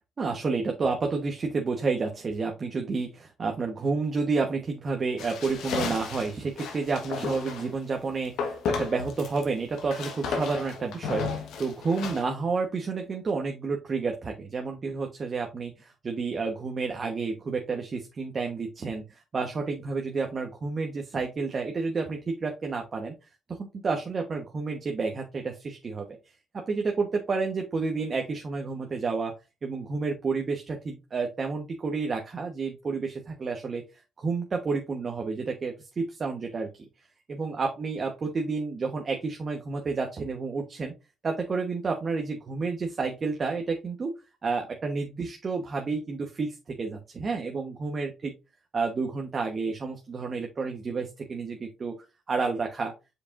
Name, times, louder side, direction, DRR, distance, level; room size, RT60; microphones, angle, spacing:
voice 1, 0.2-23.1 23.5-26.1 26.5-29.3 29.6-33.8 34.2-36.9 37.3-40.9 41.2-44.1 44.4-48.1 48.7-51.9 52.3-52.9, right 4 dB, 40° right, 2 dB, 1.1 m, -30 dB
sound 1, 5.2-7.7 8.4-9.4 9.7-12.2, left 5 dB, 80° left, 1.4 m, -33 dB
7.2 x 5.1 x 2.5 m, 0.26 s
cardioid pair, 90°, 0 cm